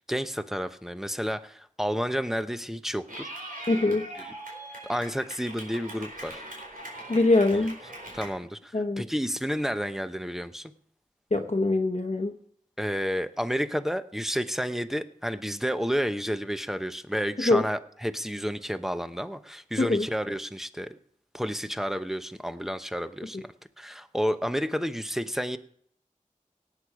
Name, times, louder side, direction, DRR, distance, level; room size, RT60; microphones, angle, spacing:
voice 1, 0.1-3.3 4.2-4.3 4.8-6.4 7.6-7.7 8.1-10.7 12.8-21.0 21.3-23.5 23.8-25.6, equal, 5° right, 10 dB, 0.9 m, -31 dB
Clapping / Cheering, 3.1-8.3, right 1 dB, 85° right, 4.3 m, -41 dB
voice 2, 3.7-4.1 7.1-7.8 8.7-9.0 11.3-12.4 17.5-17.6 19.8-20.1, left 2 dB, 50° left, 3 dB, 1.0 m, -23 dB
17.5 x 8.5 x 4.8 m, 0.64 s
wide cardioid pair, 45°, 14 cm